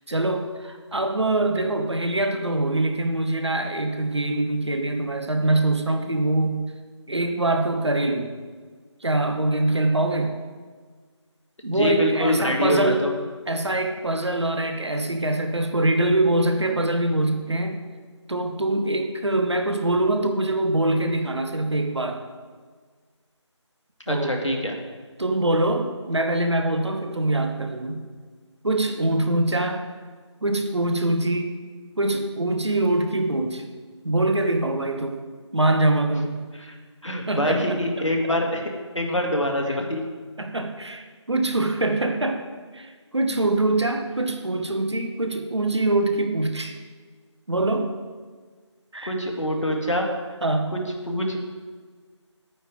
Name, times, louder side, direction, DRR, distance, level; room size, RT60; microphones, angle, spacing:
voice 1, 0.1-6.6 7.1-8.3 9.0-10.4 11.6-13.0 13.5-17.8 18.3-22.2 24.1-24.3 25.2-28.1 28.6-29.8 30.4-31.5 32.0-33.6 34.0-35.2 35.5-36.4 37.3-38.1 39.7-39.8 40.4-42.4 42.7-46.7 47.5-47.9 48.9-49.1 50.4-50.7, right 2 dB, 65° right, 5 dB, 1.3 m, -24 dB
voice 2, 11.7-13.1 24.1-24.8 36.5-36.8 37.0-40.0 49.0-50.1 50.7-50.8 51.1-51.4, left 1 dB, 80° left, 1 dB, 2.0 m, -25 dB
9.5 x 9.2 x 4.9 m, 1.5 s
figure-of-eight pair, 160°, 16 cm